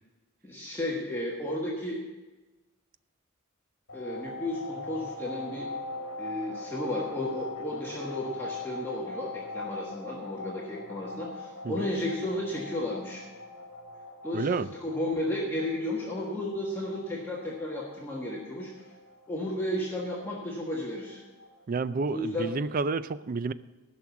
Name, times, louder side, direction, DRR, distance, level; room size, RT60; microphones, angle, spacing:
voice 1, 0.4-2.0 3.9-5.7 6.2-13.2 14.2-18.8 19.3-21.2 22.1-22.5, left 1 dB, 10° left, -4 dB, 1.5 m, -33 dB
sound 1, 3.9-22.5, left 2 dB, 60° left, 2.1 m, -42 dB
voice 2, 14.3-14.7 21.7-23.5, right 4 dB, 40° right, 15 dB, 0.4 m, -30 dB
15.0 x 6.2 x 7.1 m, 1.2 s
head